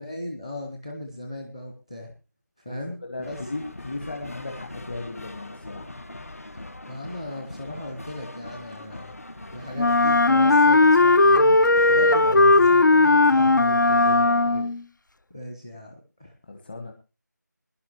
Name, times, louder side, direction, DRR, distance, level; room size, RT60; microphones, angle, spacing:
voice 1, 0.0-2.1 2.6-3.5 6.9-9.1 9.5-14.1 15.3-16.3, left 1 dB, 10° left, 3 dB, 0.7 m, -37 dB
voice 2, 3.0-5.9 11.9-14.7 16.5-16.9, left 2 dB, 30° left, 4 dB, 1.4 m, -36 dB
sound 1, 3.2-12.3, left 2 dB, 50° left, 1.3 m, -41 dB
Wind instrument woodwind instrument, 9.8-14.8, left 2 dB, 80° left, 0.6 m, -17 dB
20.5 x 11.0 x 3.0 m, 0.30 s
figure-of-eight pair, 170°, 10 cm